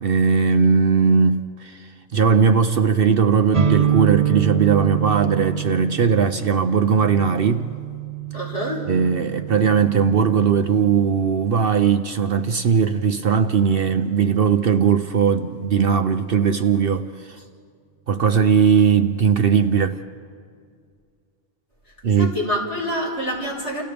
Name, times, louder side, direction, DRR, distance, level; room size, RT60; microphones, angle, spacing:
voice 1, 0.0-7.7 8.9-17.4 18.1-20.0 22.0-22.3, right 6 dB, 55° right, 0.8 m, -19 dB
sound 1, 3.5-11.1, right 9 dB, 35° right, 1.1 m, -26 dB
voice 2, 8.3-8.9 22.2-23.8, equal, 65° left, 4.9 m, -26 dB
30.0 x 30.0 x 3.5 m
omnidirectional pair, 1.3 m